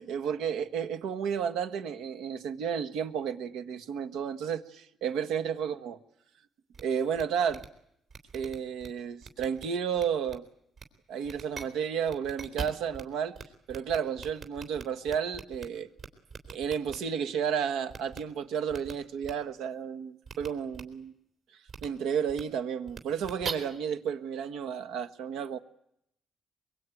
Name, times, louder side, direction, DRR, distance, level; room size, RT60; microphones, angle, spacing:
voice 1, 0.0-6.0 6.8-7.6 8.3-10.4 11.1-13.4 13.7-15.9 16.5-21.1 21.8-25.6, right 7 dB, 90° right, 1.5 m, -32 dB
sound 1, 6.7-6.8 7.1-7.2 7.5-7.7 8.1-8.9 9.2-9.6 10.0-10.3 10.8-10.9 11.2-11.6 12.1-13.0 13.3-13.4 13.7-15.6 16.0-17.0 17.9-18.2 18.7-18.9 19.2-19.3 20.2-20.5 20.7-20.8 21.7-21.9 22.3-22.4 22.9-23.5, right 5 dB, 55° right, 3.6 m, -40 dB
23.0 x 23.0 x 9.3 m
cardioid pair, 90°, 0 cm